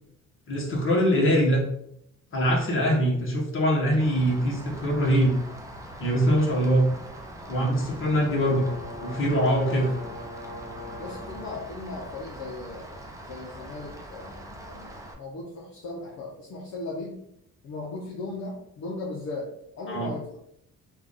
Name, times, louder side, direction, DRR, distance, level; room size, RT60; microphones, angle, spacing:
voice 1, 0.5-1.6 2.3-5.4 6.0-6.9 7.5-8.7 9.0-9.9 19.9-20.1, equal, 40° left, -2 dB, 1.3 m, -23 dB
Rain, 4.0-15.1, right 1 dB, 10° right, 0.6 m, -42 dB
sound 1, 7.7-11.6, left 2 dB, 25° right, 1.0 m, -41 dB
voice 2, 11.0-17.2 17.6-19.5 19.8-20.4, left 2 dB, 65° left, -3 dB, 0.8 m, -37 dB
3.5 x 2.5 x 3.5 m, 0.75 s
cardioid pair, 90°, 30 cm